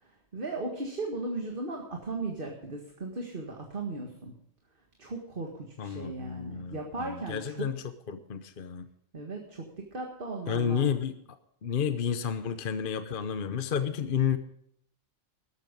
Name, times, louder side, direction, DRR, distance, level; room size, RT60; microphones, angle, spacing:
voice 1, 0.0-4.3 5.0-7.6 9.1-10.9, right 2 dB, 45° right, 1 dB, 2.0 m, -37 dB
voice 2, 5.8-7.8 8.1-8.9 10.5-11.2 11.6-14.4, left 7 dB, 45° left, 10 dB, 0.9 m, -31 dB
13.5 x 12.0 x 5.3 m, 0.71 s
omnidirectional pair, 1.3 m